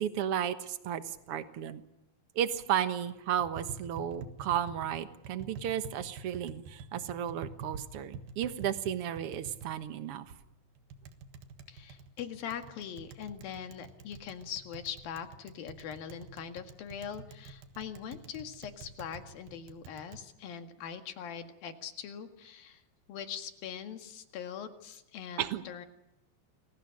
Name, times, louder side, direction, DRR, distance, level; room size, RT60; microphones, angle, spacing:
voice 1, 0.0-1.8 2.4-10.3 25.4-25.6, right 10 dB, 55° right, 10 dB, 1.7 m, -33 dB
Tap, 3.4-20.2, right 4 dB, 85° right, 3.4 m, -48 dB
voice 2, 11.7-22.8 23.1-25.9, left 8 dB, 80° left, 7 dB, 3.6 m, -42 dB
28.5 x 21.5 x 6.5 m, 0.88 s
omnidirectional pair, 4.1 m